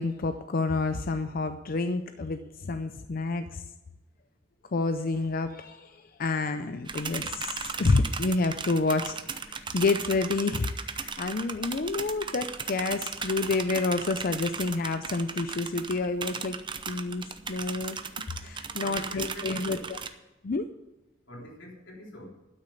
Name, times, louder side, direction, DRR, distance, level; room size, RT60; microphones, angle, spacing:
voice 1, 0.0-3.6 4.7-16.6 16.9-18.0 18.4-19.8 20.4-20.6, left 3 dB, 50° left, 9 dB, 0.5 m, -29 dB
sound 1, 6.9-20.1, right 5 dB, 25° right, 0.7 m, -36 dB
voice 2, 18.8-20.0 21.3-22.3, left 1 dB, 90° left, -2 dB, 3.6 m, -43 dB
12.5 x 6.4 x 8.5 m, 1.0 s
head